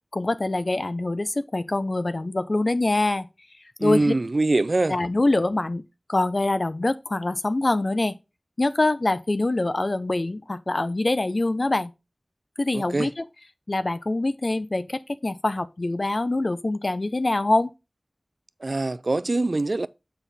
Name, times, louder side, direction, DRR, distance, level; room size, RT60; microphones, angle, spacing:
voice 1, 0.1-3.3 3.8-4.1 4.9-5.8 6.1-8.1 8.6-11.9 12.6-13.2 13.7-17.7, left 2 dB, 55° left, 0.7 m, -24 dB
voice 2, 3.8-5.0 12.7-13.1 18.6-19.9, right 2 dB, 60° right, 0.4 m, -23 dB
7.2 x 5.6 x 4.2 m
wide cardioid pair, 55°, 0 cm